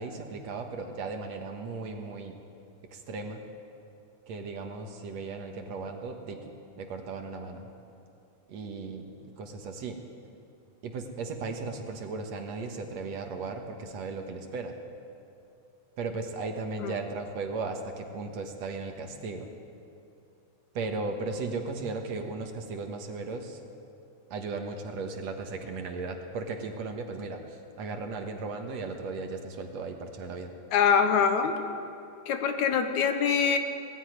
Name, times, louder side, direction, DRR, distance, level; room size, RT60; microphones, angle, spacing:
voice 1, 0.0-2.4 2.9-3.4 4.3-7.7 8.5-9.1 9.4-10.0 10.8-14.7 16.0-19.5 20.7-23.6 24.3-30.5, right 3 dB, 60° right, 4 dB, 2.4 m, -36 dB
voice 2, 30.7-31.6 32.3-33.6, left 7 dB, 70° left, 7 dB, 2.4 m, -24 dB
19.5 x 15.0 x 9.5 m, 2.7 s
omnidirectional pair, 3.6 m